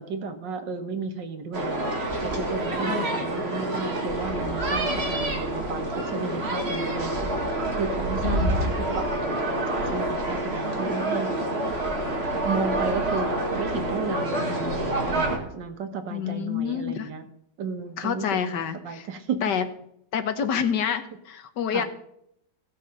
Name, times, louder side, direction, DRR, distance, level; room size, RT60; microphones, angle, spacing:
voice 1, 0.0-9.6 9.9-11.4 11.8-11.9 12.4-17.3 17.6-19.5 21.7-21.8, right 5 dB, 90° right, 6 dB, 2.0 m, -33 dB
sound 1, 1.5-15.4, right 1 dB, 35° right, 2.1 m, -27 dB
voice 2, 8.2-8.7 16.1-17.1 18.0-19.1 19.4-19.6 20.1-21.8, left 8 dB, 75° left, 9 dB, 1.6 m, -28 dB
16.0 x 6.4 x 5.3 m, 0.73 s
omnidirectional pair, 1.9 m